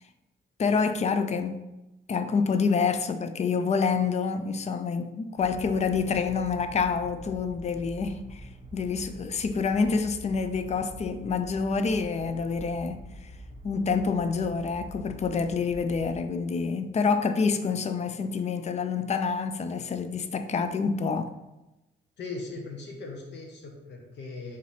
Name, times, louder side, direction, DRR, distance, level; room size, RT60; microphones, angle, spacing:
voice 1, 0.6-1.7 2.1-8.4 8.7-13.1 13.6-21.3, left 5 dB, 35° left, 0.4 m, -27 dB
sound 1, 5.4-16.2, right 1 dB, 35° right, 0.7 m, -45 dB
voice 2, 22.2-24.6, left 3 dB, 60° left, 0.9 m, -39 dB
3.9 x 3.1 x 4.2 m
cardioid pair, 90°, 20 cm